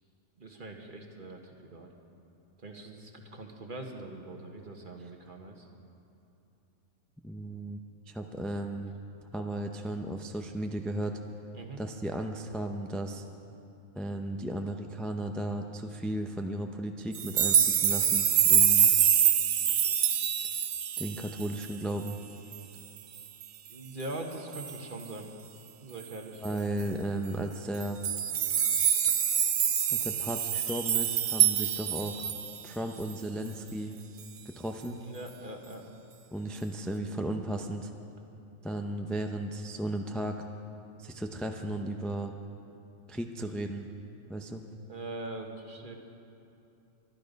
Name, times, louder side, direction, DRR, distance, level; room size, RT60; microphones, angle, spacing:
voice 1, 0.4-1.9 2.6-5.7 11.5-11.8 23.7-25.3 25.8-26.6 35.0-35.8 44.9-46.0, right 2 dB, 40° right, 2 dB, 1.5 m, -42 dB
voice 2, 7.2-7.8 8.1-8.9 9.3-11.2 11.8-13.2 14.0-18.9 21.0-22.2 26.4-28.0 29.9-32.3 32.6-33.9 34.4-35.0 36.3-37.9 38.6-40.5 41.0-42.3 43.1-43.9 44.3-44.6, right 1 dB, ahead, 4 dB, 0.4 m, -35 dB
sound 1, 17.1-21.7 22.1-22.2 22.5-22.6 23.0-23.4 24.5-24.8 26.4-26.5 26.8-26.9 27.7-32.6 33.1-33.2, right 9 dB, 60° right, 0.9 m, -25 dB
24.5 x 10.5 x 5.3 m, 2.8 s
omnidirectional pair, 1.4 m